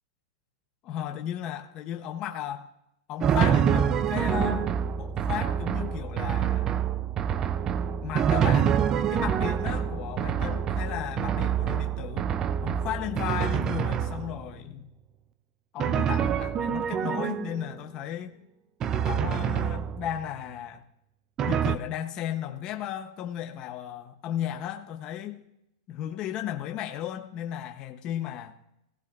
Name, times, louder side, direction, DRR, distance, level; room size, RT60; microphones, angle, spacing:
voice 1, 0.8-2.7 3.1-6.7 8.0-12.3 12.6-14.9 15.7-18.4 19.0-20.8 21.5-25.4 25.9-28.7, left 11 dB, 25° left, 0.7 m, -35 dB
Drum, 3.2-14.6 15.8-17.8 18.8-20.3 21.4-21.8, right 8 dB, 20° right, 0.3 m, -26 dB
19.0 x 15.5 x 2.4 m
supercardioid pair, 170°, 3 cm